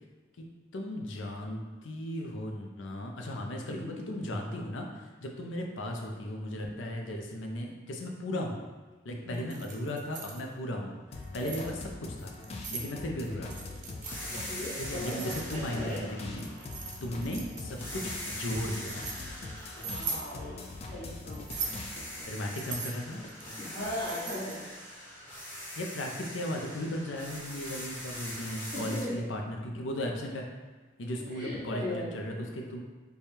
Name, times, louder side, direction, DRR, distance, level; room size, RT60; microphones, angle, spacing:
voice 1, 0.7-4.9 5.2-8.6 9.0-11.7 12.0-12.3 12.7-13.7 14.8-16.5 17.0-19.1 22.2-23.2 25.8-30.5 31.0-32.8, left 1 dB, 85° left, 1 dB, 0.6 m, -36 dB
voice 2, 3.7-4.1 9.2-9.6 11.4-11.6 13.2-13.4 14.3-16.0 17.0-17.3 19.7-20.6 20.9-21.5 23.6-24.7 28.7-29.2 31.3-32.1, left 1 dB, 50° left, -13 dB, 1.3 m, -38 dB
Keys jangling, 9.3-10.4 11.1-11.7 12.3-12.9 13.5-14.2 15.0-15.9 16.3-17.8 18.5-19.2 19.8-20.3 21.3-21.9 22.5-24.6, right 5 dB, 40° right, 0.5 m, -40 dB
sound 1, 11.1-22.3 22.6-24.0, left 3 dB, 35° left, 0.3 m, -43 dB
sound 2, 14.0-17.3 17.8-21.1 21.5-29.0, equal, 10° left, 0.8 m, -43 dB
3.3 x 2.3 x 4.2 m, 1.3 s
head